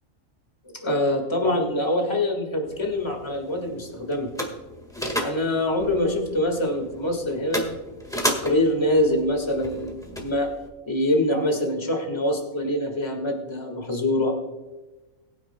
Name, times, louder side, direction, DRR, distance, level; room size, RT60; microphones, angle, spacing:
voice 1, 0.8-4.3 5.2-7.8 8.3-10.5 10.9-14.3, left 1 dB, 20° left, 3 dB, 1.8 m, -24 dB
sound 1, 2.7-10.7, equal, 5° left, 1.5 m, -34 dB
21.0 x 9.5 x 2.3 m, 1.1 s
omnidirectional pair, 1.4 m